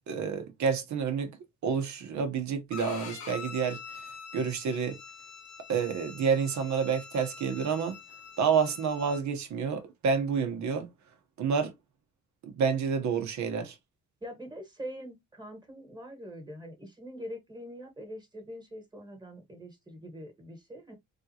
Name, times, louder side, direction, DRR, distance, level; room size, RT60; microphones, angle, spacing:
voice 1, 0.1-1.3 1.6-3.8 4.3-5.0 5.7-8.0 8.4-10.9 11.4-11.7 12.4-13.8, right 6 dB, 70° right, 1.0 m, -29 dB
Bowed string instrument, 2.7-9.2, left 5 dB, 75° left, 1.1 m, -45 dB
voice 2, 14.2-20.9, equal, 15° right, 1.4 m, -43 dB
3.6 x 2.5 x 2.7 m
cardioid pair, 90°, 30 cm